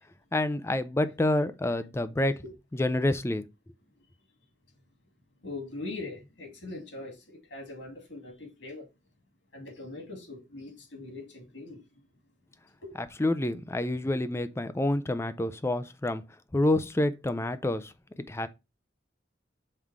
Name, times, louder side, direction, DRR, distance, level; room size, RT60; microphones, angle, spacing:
voice 1, 0.3-2.4 2.7-3.4 13.2-16.2 16.5-17.9 18.3-18.5, left 1 dB, 15° left, 0.4 m, -28 dB
voice 2, 5.4-8.9 9.5-11.9 12.8-13.0, left 2 dB, 90° left, 2.2 m, -41 dB
5.5 x 3.6 x 4.7 m
head